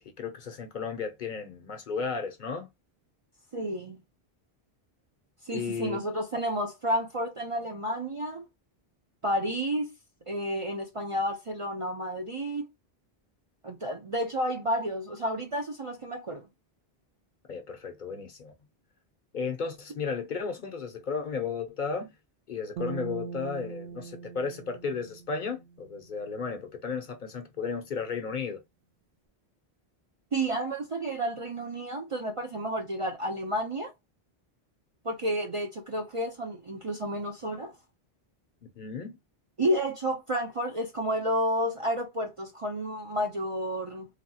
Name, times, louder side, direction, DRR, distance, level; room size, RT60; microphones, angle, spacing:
voice 1, 0.0-2.7 5.5-6.0 17.5-18.5 19.3-22.1 22.5-28.6 38.6-39.2, left 5 dB, 55° left, 0.7 m, -34 dB
voice 2, 3.5-4.0 5.4-8.5 9.2-9.9 10.3-12.7 13.6-16.5 30.3-33.9 35.0-37.7 39.6-44.1, right 1 dB, 40° right, 0.5 m, -31 dB
sound 1, 22.8-26.1, right 6 dB, 80° right, 0.8 m, -41 dB
3.3 x 2.3 x 2.7 m
omnidirectional pair, 1.0 m